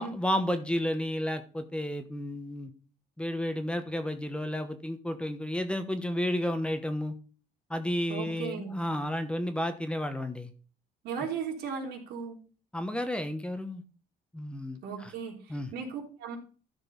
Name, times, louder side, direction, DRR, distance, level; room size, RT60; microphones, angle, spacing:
voice 1, 0.0-2.7 3.2-7.1 7.7-10.5 12.7-13.8 14.3-15.1 15.5-15.7, left 1 dB, 5° left, 8 dB, 1.1 m, -32 dB
voice 2, 8.1-8.8 11.0-12.4 14.8-16.4, right 6 dB, 80° right, 1 dB, 3.4 m, -36 dB
13.0 x 5.4 x 4.1 m, 0.39 s
cardioid pair, 110°, 17 cm